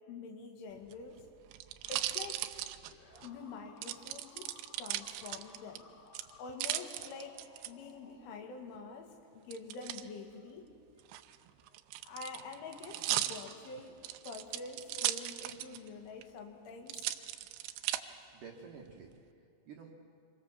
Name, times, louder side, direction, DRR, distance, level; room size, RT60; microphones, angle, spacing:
voice 1, 0.1-1.2 1.9-2.5 3.2-5.9 6.4-10.7 12.0-17.1, left 4 dB, 75° left, 4 dB, 4.4 m, -46 dB
sound 1, 0.8-3.3 3.8-5.8 6.1-7.7 9.5-10.0 11.0-15.9 16.2-16.3 16.9-18.0 18.6-19.2, right 14 dB, 80° right, 3.0 m, -37 dB
sound 2, 2.9-8.9, left 5 dB, 55° left, 4.3 m, -59 dB
voice 2, 18.3-19.9, right 5 dB, 60° right, 0 dB, 2.4 m, -51 dB
26.0 x 25.0 x 7.3 m, 2.5 s
omnidirectional pair, 5.6 m